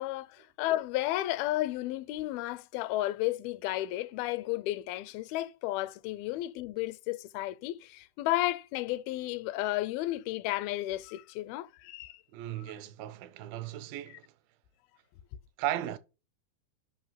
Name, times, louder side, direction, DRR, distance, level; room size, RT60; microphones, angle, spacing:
voice 1, 0.0-12.2 12.6-12.7, left 16 dB, 85° left, 2.4 m, -33 dB
voice 2, 12.3-14.3 15.6-16.0, right 13 dB, 80° right, 2.4 m, -36 dB
5.6 x 5.5 x 5.7 m
omnidirectional pair, 4.3 m